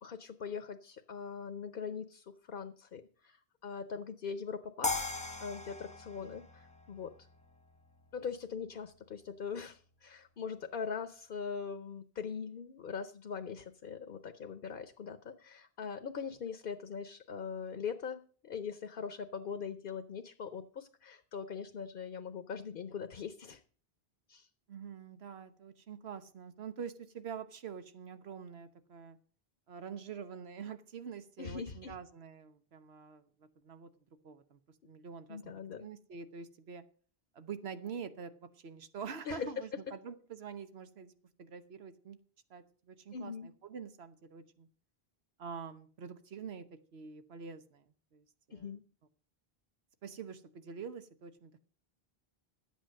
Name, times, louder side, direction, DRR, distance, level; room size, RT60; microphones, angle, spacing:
voice 1, 0.0-5.1 5.4-7.1 8.1-23.6 24.3-24.5 31.4-31.9 35.3-35.9 39.2-39.5 43.1-43.5 48.5-48.8, left 6 dB, 60° left, 10 dB, 0.9 m, -41 dB
sound 1, 4.8-7.9, left 3 dB, 5° left, 0.9 m, -39 dB
voice 2, 24.7-29.2 29.7-33.9 34.2-34.6 34.8-36.8 37.3-41.1 41.4-42.2 42.5-44.7 45.4-48.7 50.0-51.6, right 6 dB, 85° right, 10 dB, 1.3 m, -46 dB
11.5 x 8.4 x 6.4 m, 0.44 s
omnidirectional pair, 1.0 m